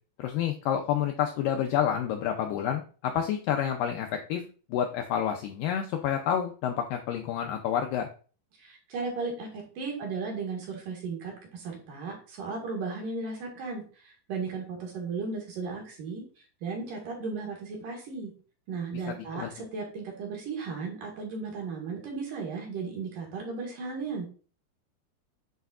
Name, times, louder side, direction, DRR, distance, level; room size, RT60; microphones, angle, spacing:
voice 1, 0.2-4.4 4.7-8.1 19.1-19.5, left 9 dB, 80° left, 4 dB, 2.0 m, -29 dB
voice 2, 8.6-9.5 9.8-16.2 16.6-18.3 18.7-24.3, right 4 dB, 60° right, 0 dB, 3.1 m, -35 dB
8.0 x 5.1 x 2.4 m, 0.38 s
omnidirectional pair, 4.5 m